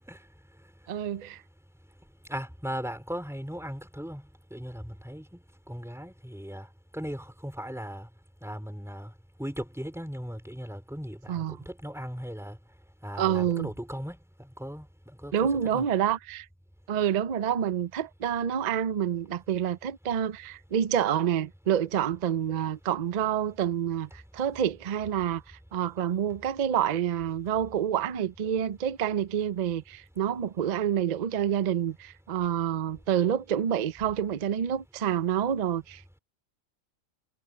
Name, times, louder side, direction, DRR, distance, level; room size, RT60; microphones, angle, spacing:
voice 1, 0.9-1.4 11.3-11.6 13.2-13.7 15.3-16.5 16.9-36.2, right 9 dB, 50° right, 0.5 m, -28 dB
voice 2, 2.3-6.7 6.9-8.1 8.4-9.1 9.4-12.6 13.0-15.9, equal, ahead, 3.8 m, -38 dB
omnidirectional pair, 1.4 m